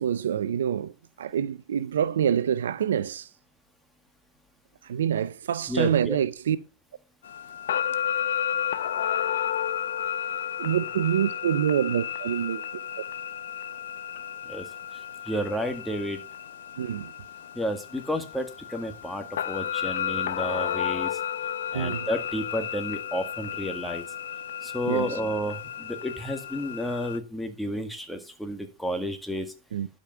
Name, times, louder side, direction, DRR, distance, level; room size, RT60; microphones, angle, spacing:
voice 1, 0.0-3.3 4.8-6.6 10.6-12.6 13.0-13.1 16.8-17.1 21.7-22.1 24.9-25.2 29.7-29.9, right 9 dB, 85° right, 0.6 m, -26 dB
voice 2, 5.7-6.2 14.5-16.2 17.5-21.2 21.7-24.0 24.6-29.5, equal, 5° left, 1.9 m, -31 dB
sound 1, 7.2-27.2, left 9 dB, 80° left, 0.8 m, -32 dB
12.0 x 5.2 x 5.7 m
hypercardioid pair, 105°, 0 cm